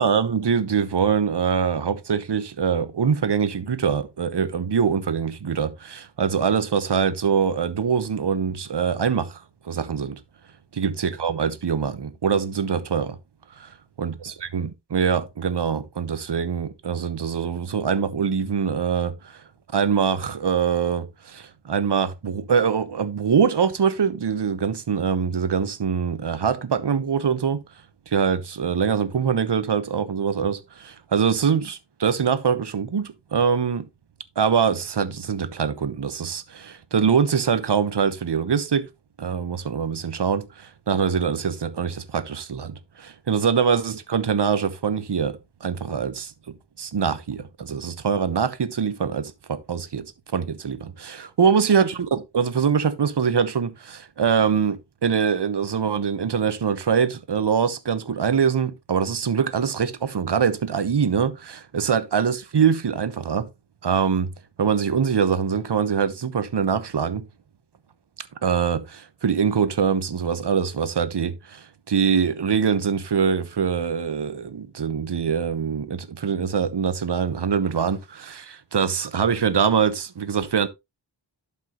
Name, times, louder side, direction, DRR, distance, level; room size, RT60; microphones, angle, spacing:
voice 1, 0.0-9.2 9.7-10.1 10.8-13.1 14.0-19.1 19.7-21.0 21.7-27.6 28.1-30.6 31.1-33.8 34.4-36.4 36.9-38.8 39.2-40.4 40.9-42.7 43.3-45.3 45.6-46.3 46.8-47.4 47.7-49.2 49.7-50.0 50.3-53.7 54.2-54.8 55.0-63.4 63.8-64.3 64.6-67.2 68.4-68.8 69.2-71.3 71.9-78.0 78.3-78.4 78.7-80.7, right 6 dB, 65° right, 1.0 m, -23 dB
12.0 x 5.5 x 2.9 m
wide cardioid pair, 85°, 44 cm